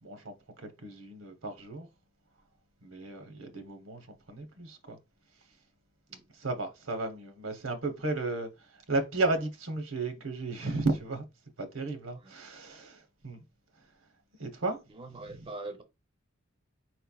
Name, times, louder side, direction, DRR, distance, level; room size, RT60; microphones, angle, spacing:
voice 1, 0.0-1.9 2.8-5.0 6.4-11.2 11.6-13.4 14.4-14.8, right 2 dB, 80° right, 0.9 m, -34 dB
voice 2, 14.9-15.8, right 2 dB, 25° right, 0.5 m, -43 dB
4.4 x 4.3 x 2.3 m
head